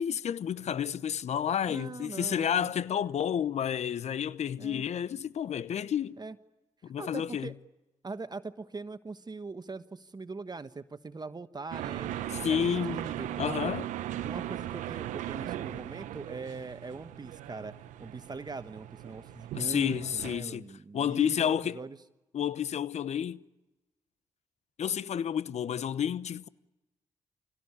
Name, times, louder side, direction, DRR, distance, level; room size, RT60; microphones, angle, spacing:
voice 1, 0.0-6.2 6.8-7.5 12.3-13.1 13.4-13.9 19.5-20.7 20.9-21.8 22.3-23.4 24.8-26.5, left 9 dB, 60° left, 0.9 m, -30 dB
voice 2, 1.7-2.7 4.6-4.8 6.2-6.4 7.0-7.6 8.0-12.6 12.9-13.7 14.2-17.7 18.0-22.0, right 4 dB, 35° right, 1.2 m, -41 dB
sound 1, 11.7-20.4, right 13 dB, 80° right, 1.0 m, -38 dB
25.5 x 17.5 x 9.9 m
supercardioid pair, 45°, 13 cm